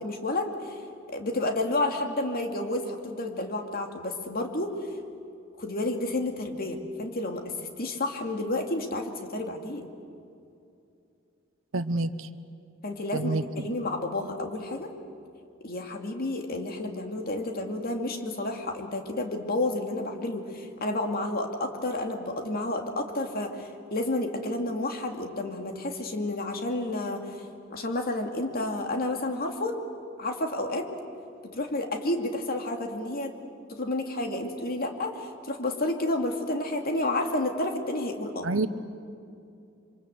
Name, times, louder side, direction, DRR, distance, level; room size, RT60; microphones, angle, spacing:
voice 1, 0.0-0.8 1.1-4.7 5.6-7.5 7.8-9.9 12.8-14.9 15.6-27.4 27.7-29.8 30.2-30.9 31.5-33.3 33.7-38.5, left 2 dB, 50° left, 4 dB, 2.4 m, -30 dB
voice 2, 11.7-12.3 13.1-13.7 38.4-38.7, right 2 dB, 75° right, 11 dB, 0.9 m, -28 dB
27.0 x 24.0 x 7.9 m, 2.6 s
head